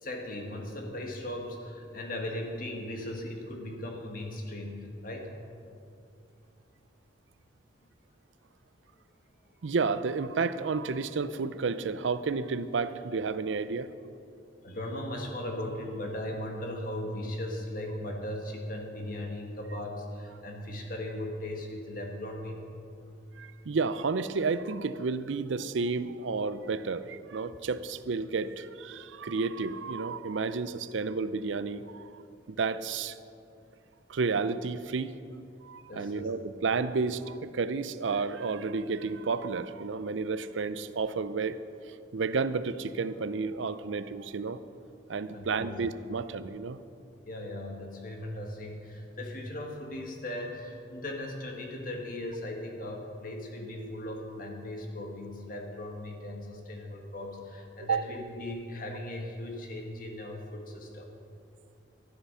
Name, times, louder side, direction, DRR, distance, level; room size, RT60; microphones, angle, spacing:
voice 1, 0.0-5.3 14.6-22.7 35.9-36.3 45.3-45.8 47.2-61.1, left 1 dB, 50° left, 1 dB, 1.8 m, -38 dB
voice 2, 9.6-13.9 23.4-32.2 32.5-33.2 34.1-35.2 35.6-41.6 41.9-44.6 45.1-46.8 57.8-58.0, right 4 dB, 90° right, 13 dB, 0.5 m, -31 dB
12.5 x 11.5 x 5.6 m, 2.5 s
head